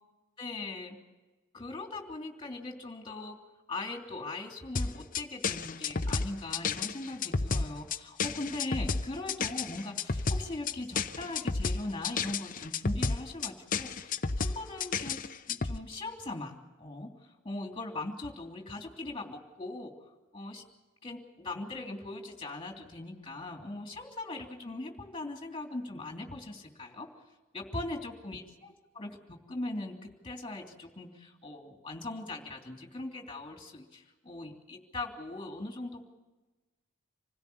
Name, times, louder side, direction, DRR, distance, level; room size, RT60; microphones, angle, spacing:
voice 1, 0.4-1.0 1.5-3.4 3.7-15.2 15.5-17.1 17.4-19.9 20.3-20.6 21.0-27.1 27.5-28.4 28.9-36.0, left 2 dB, 25° left, 2 dB, 3.1 m, -40 dB
sound 1, 4.8-15.8, left 4 dB, 40° left, 0.8 m, -31 dB
26.5 x 16.5 x 7.0 m, 1.2 s
head